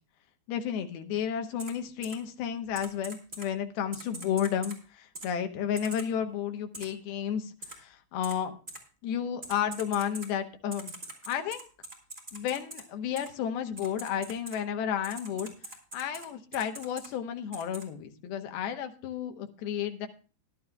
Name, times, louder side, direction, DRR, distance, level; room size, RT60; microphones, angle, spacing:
voice 1, 0.5-8.5 9.0-10.9 11.3-11.7 12.3-15.5 15.9-20.1, left 9 dB, 90° left, 6 dB, 3.0 m, -32 dB
Typing, 1.6-1.7 2.0-2.1 2.7-3.5 3.9-4.8 5.1-5.3 5.8-6.0 6.7-6.8 7.6-7.7 8.2-8.3 8.7-8.8 9.4-10.3 10.7-12.8 13.2-13.3 13.8-14.6 15.0-16.3 16.5-17.1 17.5-17.8, right 1 dB, 15° right, 2.2 m, -42 dB
17.5 x 11.5 x 2.3 m, 0.35 s
omnidirectional pair, 4.3 m